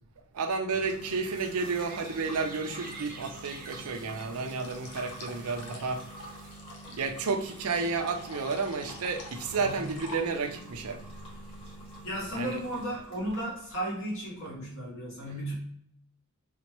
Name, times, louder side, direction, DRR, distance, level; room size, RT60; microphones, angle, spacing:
voice 1, 0.3-6.0 6.9-11.0 12.3-12.6, right 4 dB, 80° right, 6 dB, 0.5 m, -31 dB
sound 1, 0.7-13.8, right 1 dB, 25° left, 1.4 m, -47 dB
sound 2, 1.3-6.6, right 3 dB, 40° right, 0.6 m, -48 dB
sound 3, 4.4-10.6, left 2 dB, 85° left, 0.8 m, -48 dB
voice 2, 9.5-9.9 12.0-15.5, right 1 dB, 60° left, -6 dB, 1.2 m, -35 dB
4.1 x 2.1 x 3.0 m, 0.69 s
head